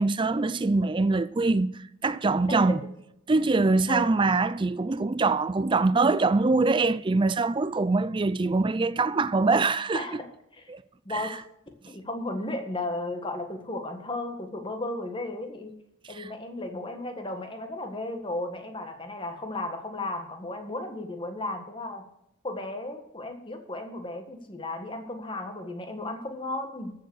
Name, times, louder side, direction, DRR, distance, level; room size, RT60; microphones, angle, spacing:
voice 1, 0.0-1.7 2.0-2.8 3.3-10.2 10.7-10.8 11.1-11.4 16.1-16.3, right 3 dB, 25° right, 0.4 m, -24 dB
voice 2, 9.9-10.3 10.5-10.7 11.0-11.4 11.9-15.7 16.1-22.1 22.4-26.9, left 2 dB, 25° left, 1.6 m, -34 dB
14.0 x 7.0 x 6.4 m
head